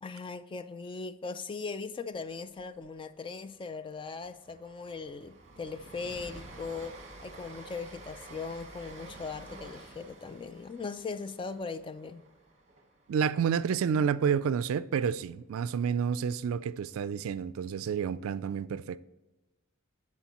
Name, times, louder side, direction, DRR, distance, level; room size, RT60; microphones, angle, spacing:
voice 1, 0.0-12.2, left 4 dB, 25° left, 0.3 m, -39 dB
Train, 2.6-2.9 3.1-3.3 3.7-13.8, right 2 dB, 35° right, 1.2 m, -50 dB
voice 2, 13.1-19.0, right 7 dB, 75° right, 0.3 m, -29 dB
12.5 x 4.6 x 3.0 m
head